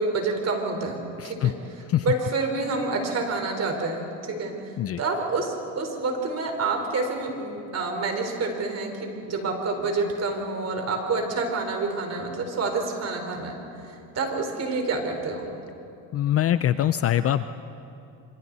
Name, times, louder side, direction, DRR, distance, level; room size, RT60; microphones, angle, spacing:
voice 1, 0.0-15.5, right 3 dB, 35° right, 3 dB, 4.3 m, -28 dB
voice 2, 1.2-1.5 1.9-2.0 4.8-5.0 16.1-17.5, left 11 dB, 35° left, 13 dB, 0.5 m, -23 dB
27.5 x 26.5 x 4.1 m, 2.7 s
supercardioid pair, 110°, 42 cm